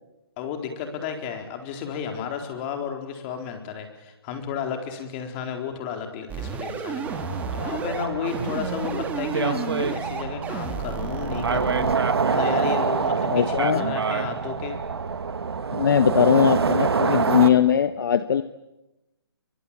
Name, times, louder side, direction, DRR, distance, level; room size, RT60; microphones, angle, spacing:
voice 1, 0.4-7.2 7.5-14.8, left 7 dB, 25° left, 5 dB, 4.3 m, -32 dB
sound 1, 6.3-11.9, right 6 dB, 10° right, 2.0 m, -33 dB
sound 2, 7.0-17.5, right 5 dB, 75° right, 2.3 m, -26 dB
voice 2, 13.3-13.9 15.7-18.4, left 8 dB, 55° left, 12 dB, 1.1 m, -20 dB
28.5 x 24.0 x 8.7 m, 0.97 s
hypercardioid pair, 155°, 13 cm